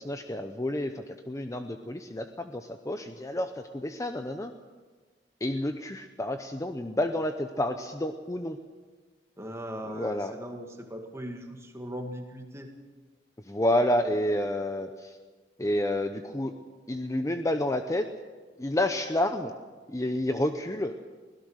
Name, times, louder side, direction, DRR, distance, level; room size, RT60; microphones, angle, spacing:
voice 1, 0.0-4.5 5.4-8.6 9.9-10.3 13.5-15.2 15.6-16.5 16.9-18.1 18.6-19.5 19.9-20.9, left 1 dB, 20° left, 7 dB, 0.7 m, -29 dB
voice 2, 9.4-12.7, equal, 15° right, 3 dB, 2.1 m, -39 dB
24.0 x 17.0 x 6.5 m, 1.4 s
head